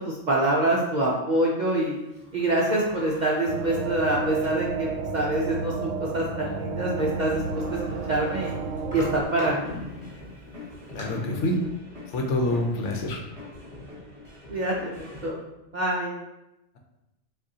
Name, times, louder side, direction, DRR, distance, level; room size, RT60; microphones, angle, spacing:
voice 1, 0.0-2.0 2.3-4.9 5.1-7.4 7.7-7.8 8.1-8.6 8.9-9.7 14.5-15.4 15.7-16.1, right 1 dB, 50° right, -4 dB, 0.5 m, -25 dB
Sliding door, 2.1-4.7 5.3-5.4 6.7-6.8 7.0-10.1 10.6-11.0, equal, 5° left, 1.2 m, -43 dB
sound 1, 3.5-9.2, right 4 dB, 80° right, 0.9 m, -31 dB
sound 2, 9.6-15.3, left 2 dB, 25° right, 1.4 m, -42 dB
voice 2, 10.9-11.6 12.1-13.2, left 1 dB, 70° left, 2 dB, 1.0 m, -26 dB
6.2 x 2.6 x 2.7 m, 0.94 s
omnidirectional pair, 1.3 m